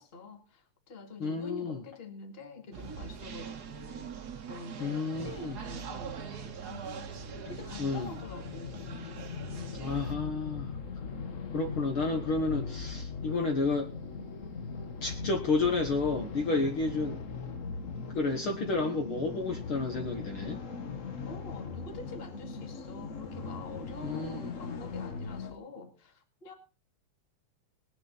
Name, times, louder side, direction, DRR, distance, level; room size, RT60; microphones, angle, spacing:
voice 1, 0.0-9.1 21.3-26.5, left 2 dB, 25° left, 1.9 m, -46 dB
voice 2, 1.2-1.8 4.8-5.6 7.8-8.1 9.8-10.8 11.5-13.9 15.0-17.2 18.1-20.6 24.0-24.5, left 3 dB, 55° left, 2.0 m, -31 dB
sound 1, 2.7-10.1, right 7 dB, 50° right, 1.3 m, -43 dB
sound 2, 6.1-25.5, left 4 dB, 80° left, 0.7 m, -40 dB
20.0 x 9.8 x 4.1 m
omnidirectional pair, 3.3 m